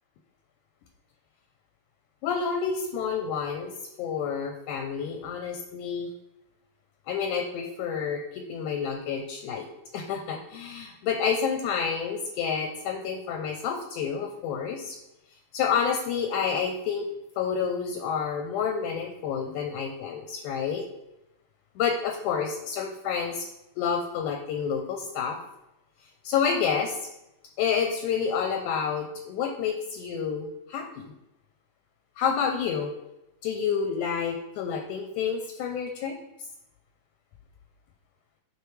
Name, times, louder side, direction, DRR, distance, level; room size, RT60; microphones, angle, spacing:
voice 1, 2.2-6.1 7.1-9.7 9.9-15.0 15.5-17.1 17.4-20.8 21.8-23.5 23.8-25.4 26.2-27.1 27.6-31.1 32.2-32.9 33.4-36.2, left 6 dB, 80° left, 4 dB, 1.9 m, -29 dB
8.2 x 4.7 x 3.1 m, 0.89 s
omnidirectional pair, 3.9 m